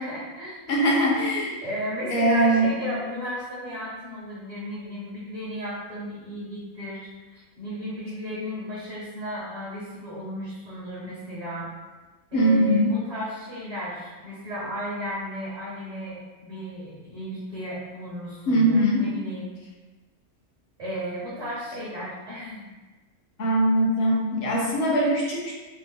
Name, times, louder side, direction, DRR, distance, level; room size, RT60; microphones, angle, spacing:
voice 1, 0.0-0.6 1.6-11.7 12.3-19.5 20.8-22.7, equal, 40° right, -8 dB, 0.8 m, -34 dB
voice 2, 0.7-1.5 2.1-2.7 12.3-12.9 18.5-19.0 23.4-25.6, right 1 dB, 55° left, -2 dB, 0.8 m, -21 dB
3.0 x 2.1 x 3.6 m, 1.2 s
omnidirectional pair, 1.4 m